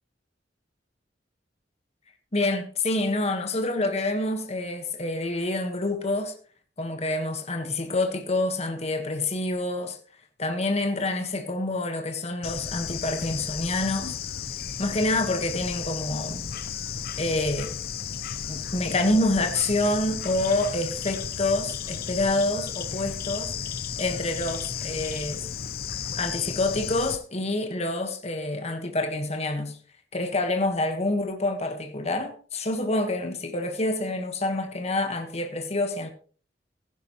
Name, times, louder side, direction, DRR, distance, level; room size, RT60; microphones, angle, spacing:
voice 1, 2.3-6.3 6.8-10.0 10.4-14.2 14.8-16.5 17.2-17.7 18.5-23.5 24.0-25.5 26.1-29.8 30.1-36.1, left 2 dB, 35° left, 1.4 m, -27 dB
Bird / Insect, 12.4-27.2, left 7 dB, 55° left, 0.7 m, -34 dB
15.0 x 10.5 x 3.1 m
head